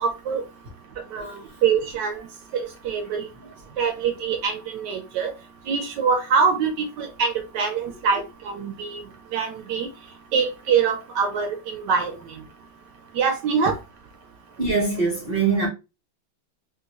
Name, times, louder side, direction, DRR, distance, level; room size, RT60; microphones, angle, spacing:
voice 1, 0.0-0.4 1.1-2.2 2.5-3.3 3.8-5.3 5.7-9.0 9.3-9.9 10.3-12.2 13.1-13.8, right 6 dB, 75° right, 1.0 m, -24 dB
voice 2, 14.6-15.7, right 4 dB, 55° right, 0.6 m, -23 dB
3.7 x 2.5 x 2.7 m
omnidirectional pair, 2.2 m